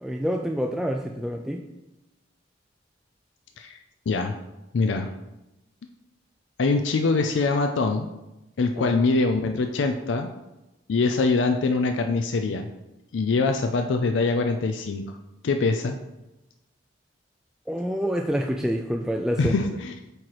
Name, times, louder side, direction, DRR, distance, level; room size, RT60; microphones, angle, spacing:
voice 1, 0.0-1.6 8.8-8.9 17.7-19.5, equal, 5° right, 2 dB, 0.3 m, -27 dB
voice 2, 4.1-4.4 4.7-5.1 6.6-8.1 8.6-10.3 10.9-12.7 13.1-15.0 15.4-16.0 19.4-19.9, left 3 dB, 85° left, 5 dB, 0.4 m, -23 dB
7.8 x 3.0 x 4.8 m, 0.97 s
head